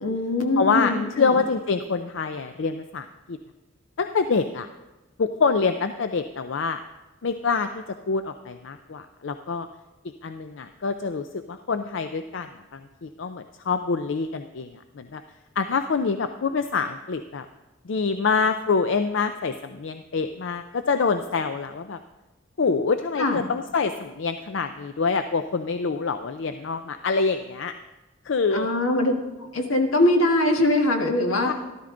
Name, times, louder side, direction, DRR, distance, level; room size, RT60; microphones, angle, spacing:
voice 1, 0.0-1.3 23.2-23.5 28.5-29.1 29.5-31.5, left 1 dB, 80° left, 3 dB, 1.6 m, -22 dB
voice 2, 0.6-3.4 4.0-4.7 5.2-6.8 7.2-9.7 10.0-15.2 15.6-17.5 17.8-22.0 22.6-27.7 28.2-28.7 31.4-31.5, left 4 dB, 60° left, 9 dB, 0.5 m, -26 dB
13.5 x 12.5 x 3.8 m, 1.1 s
head